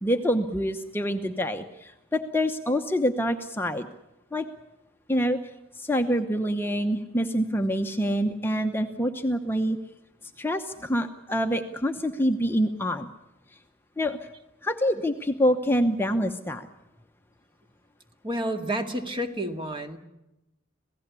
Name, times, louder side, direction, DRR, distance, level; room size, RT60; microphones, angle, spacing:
voice 1, 0.0-3.9 4.3-4.5 5.1-5.4 5.7-9.8 10.4-13.1 14.0-14.2 14.6-16.7, equal, 10° left, 5 dB, 1.0 m, -26 dB
voice 2, 18.2-20.0, right 1 dB, 25° right, 6 dB, 2.0 m, -30 dB
27.0 x 17.0 x 8.3 m, 0.94 s
head